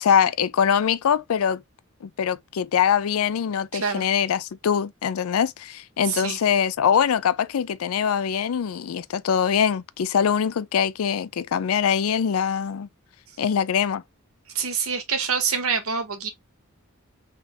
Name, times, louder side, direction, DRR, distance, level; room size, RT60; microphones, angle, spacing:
voice 1, 0.0-1.6 2.0-12.9 13.4-14.0, left 7 dB, 85° left, 0.4 m, -23 dB
voice 2, 3.7-4.0 6.0-6.4 14.5-16.3, right 6 dB, 85° right, 1.2 m, -26 dB
3.6 x 2.8 x 3.4 m
head